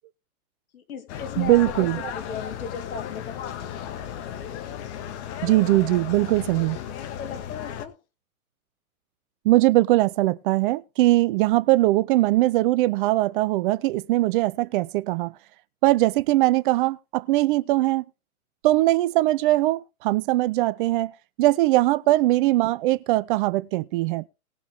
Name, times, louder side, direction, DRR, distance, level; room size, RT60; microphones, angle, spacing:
voice 1, 0.7-1.9 2.1-3.5 3.8-4.0 7.2-8.0, left 6 dB, 70° left, 2.6 m, -36 dB
sound 1, 1.1-7.9, left 9 dB, 50° left, 2.0 m, -35 dB
voice 2, 1.4-2.1 5.4-6.8 9.4-15.3 15.8-18.0 18.6-21.1 21.4-24.2, right 17 dB, 35° right, 0.6 m, -21 dB
19.5 x 6.9 x 3.5 m
hypercardioid pair, 120°, 44 cm